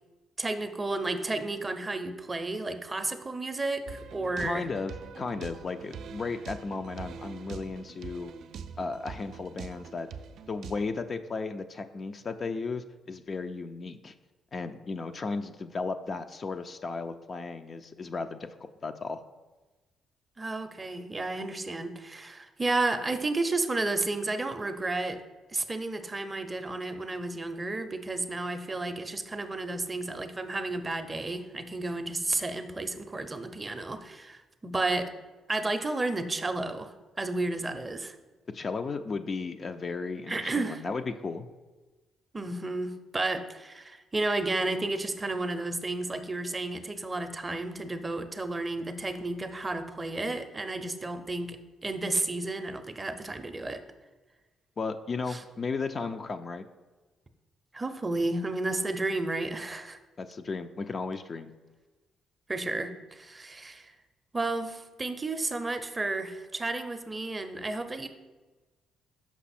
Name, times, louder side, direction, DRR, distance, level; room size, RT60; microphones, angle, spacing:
voice 1, 0.4-4.6 20.4-25.2 25.5-35.1 35.5-36.9 37.2-38.2 40.3-40.8 42.3-51.6 51.8-53.8 55.3-55.4 57.7-60.0 62.5-63.9 64.3-68.1, right 2 dB, 20° right, 8 dB, 0.5 m, -32 dB
sound 1, 3.9-10.8, right 6 dB, 70° right, 0.3 m, -44 dB
voice 2, 4.4-8.3 8.8-10.1 10.5-14.1 14.5-18.5 18.8-19.2 38.5-41.5 54.8-56.7 60.2-61.5, left 4 dB, 40° left, 8 dB, 0.4 m, -35 dB
6.0 x 5.4 x 4.2 m, 1.2 s
cardioid pair, 90°, 0 cm